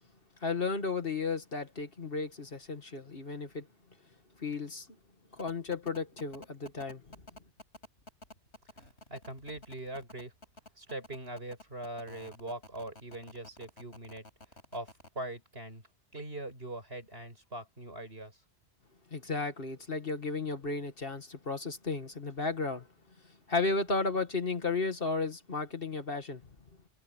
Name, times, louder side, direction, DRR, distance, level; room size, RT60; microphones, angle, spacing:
voice 1, 0.4-3.7 4.4-4.9 5.3-7.1 19.1-22.9 23.5-26.4, left 3 dB, 55° left, 2.2 m, -34 dB
sound 1, 5.4-15.1, left 1 dB, 75° left, 5.8 m, -51 dB
voice 2, 9.1-10.3 10.8-14.2 14.7-14.9 15.1-15.8 16.1-18.3, right 1 dB, 60° right, 6.8 m, -41 dB
omnidirectional pair, 1.2 m